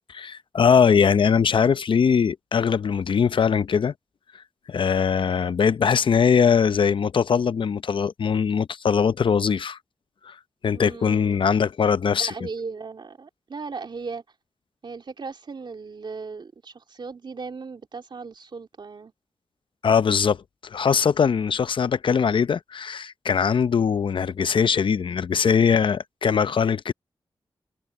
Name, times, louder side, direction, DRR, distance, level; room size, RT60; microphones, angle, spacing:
voice 1, 0.1-3.9 4.7-9.8 10.2-10.4 10.6-12.3 19.8-26.9, left 6 dB, 70° left, 0.6 m, -21 dB
voice 2, 10.7-11.4 12.2-14.2 14.8-19.1, right 4 dB, 60° right, 2.8 m, -37 dB
cardioid pair, 65°, 9 cm